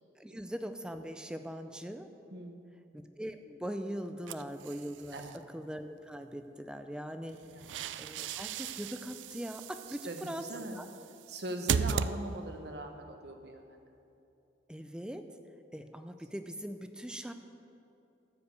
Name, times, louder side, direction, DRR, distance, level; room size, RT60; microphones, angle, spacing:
voice 1, 0.2-2.1 2.9-5.2 5.5-7.4 8.0-10.9 14.7-15.2 15.7-17.3, equal, 5° right, 8 dB, 0.4 m, -41 dB
voice 2, 2.3-2.9 5.1-5.4 7.4-7.7 9.9-10.8 11.3-13.8, right 1 dB, 60° right, 5 dB, 1.0 m, -41 dB
sound 1, 4.3-5.4 7.3-12.7, right 6 dB, 85° right, 0.3 m, -37 dB
13.0 x 5.1 x 8.2 m, 2.8 s
head